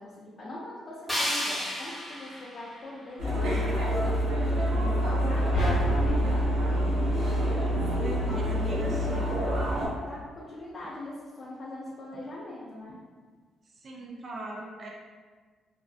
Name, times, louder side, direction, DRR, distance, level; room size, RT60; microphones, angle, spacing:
voice 1, 0.0-5.5 5.9-7.4 8.5-9.3 10.0-13.0, left 1 dB, 45° left, -6 dB, 0.4 m, -42 dB
sound 1, 1.1-4.1, equal, 10° left, 0.9 m, -34 dB
sound 2, 3.2-9.9, equal, 80° right, 0.7 m, -26 dB
sound 3, 5.5-7.9, equal, 80° left, 0.7 m, -33 dB
voice 2, 7.8-9.4 13.8-14.9, right 2 dB, 45° right, -2 dB, 0.4 m, -39 dB
2.4 x 2.1 x 2.4 m, 1.5 s
cardioid pair, 90°, 0 cm